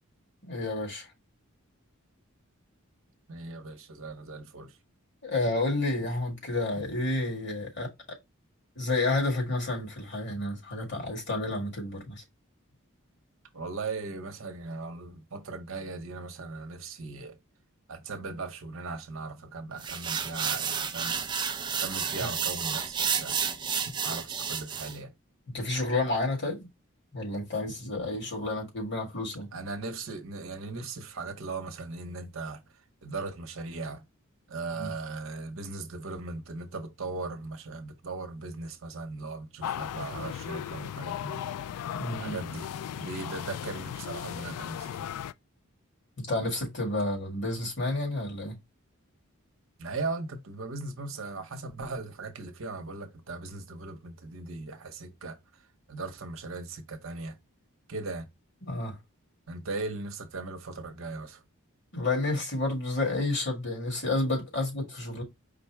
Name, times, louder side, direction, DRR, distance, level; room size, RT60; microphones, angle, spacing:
voice 1, 0.4-1.1 5.2-7.9 8.8-12.2 22.2-22.3 25.5-26.7 27.1-29.5 34.7-34.9 41.9-42.4 46.2-48.6 58.6-59.0 61.9-65.2, left 2 dB, 50° left, 1.9 m, -30 dB
voice 2, 3.3-4.8 13.5-17.4 17.9-21.2 21.8-23.4 24.0-25.1 29.5-34.0 34.5-41.6 42.2-42.7 42.9-45.1 49.8-57.4 57.9-58.3 59.5-61.4, right 3 dB, 65° right, 0.8 m, -38 dB
sound 1, 19.8-25.0, right 6 dB, 20° right, 0.3 m, -31 dB
sound 2, 39.6-45.3, left 9 dB, 85° left, 0.3 m, -36 dB
5.1 x 2.1 x 4.5 m
head